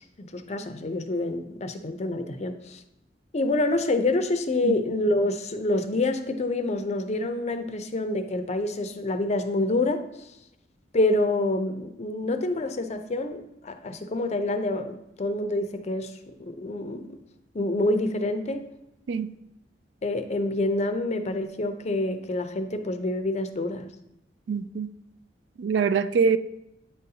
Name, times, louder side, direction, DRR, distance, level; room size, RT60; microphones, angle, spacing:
voice 1, 0.0-2.8 3.3-10.0 10.9-17.2 17.5-18.6 20.0-23.9, left 2 dB, 40° left, 0.5 m, -27 dB
voice 2, 24.5-24.9 25.6-26.4, right 6 dB, 70° right, 0.3 m, -24 dB
9.0 x 3.9 x 2.8 m
head